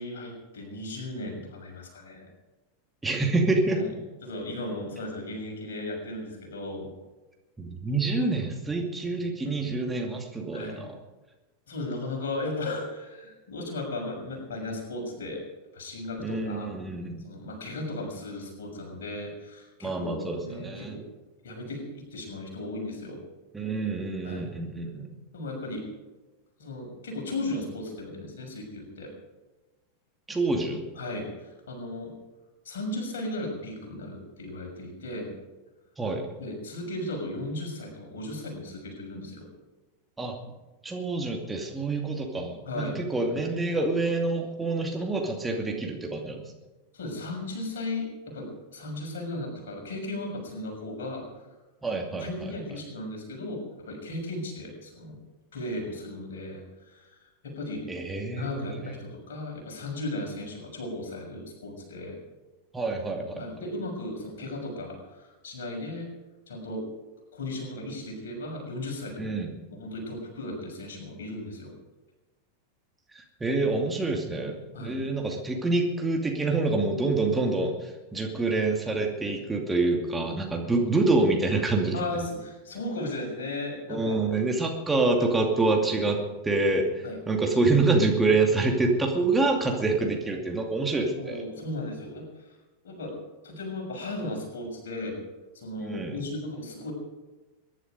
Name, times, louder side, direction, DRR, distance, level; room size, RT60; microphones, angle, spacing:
voice 1, 0.0-2.3 3.7-3.9 4.2-6.9 10.5-10.9 11.7-15.4 15.7-16.8 17.2-21.0 21.4-23.2 24.2-24.5 25.3-25.9 26.6-29.1 30.9-32.1 32.6-35.3 36.4-39.5 42.7-43.0 46.9-51.3 52.2-55.2 55.5-57.9 58.3-62.2 63.4-66.1 66.5-66.9 67.3-69.4 69.7-71.7 74.7-75.0 81.9-84.2 85.2-85.3 87.0-87.2 91.2-92.5 92.8-93.2 93.4-95.2 95.5-96.9, left 2 dB, 60° left, 1 dB, 6.3 m, -36 dB
voice 2, 3.0-3.8 7.6-10.9 16.2-17.2 19.8-21.0 23.5-25.1 30.3-30.8 36.0-36.3 40.2-40.4 40.8-46.5 51.8-52.5 57.9-58.9 62.7-63.4 69.2-69.5 73.1-82.0 83.9-91.4 95.8-96.2, right 3 dB, 10° right, 1 dB, 2.5 m, -27 dB
23.0 x 11.5 x 5.3 m, 1.1 s
figure-of-eight pair, 90°, 0 cm